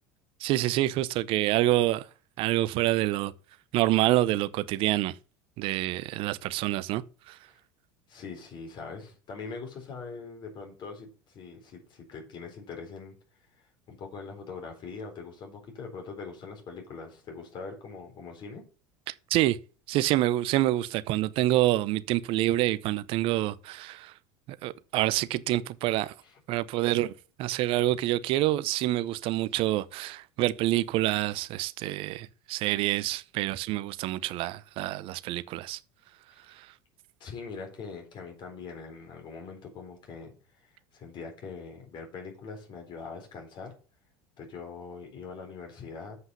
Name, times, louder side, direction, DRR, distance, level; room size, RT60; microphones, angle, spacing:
voice 1, 0.4-2.1 2.4-3.3 3.7-5.2 5.6-7.4 19.1-19.6 19.9-24.1 24.6-26.1 26.5-27.1 27.4-35.8 36.5-36.7, right 15 dB, 55° right, 0.6 m, -27 dB
voice 2, 8.1-13.1 13.9-18.6 26.2-26.3 36.3-36.4 37.2-40.3 40.6-43.7 44.4-46.2, left 4 dB, 45° left, 4.1 m, -42 dB
7.9 x 5.5 x 6.9 m
hypercardioid pair, 80°, 11 cm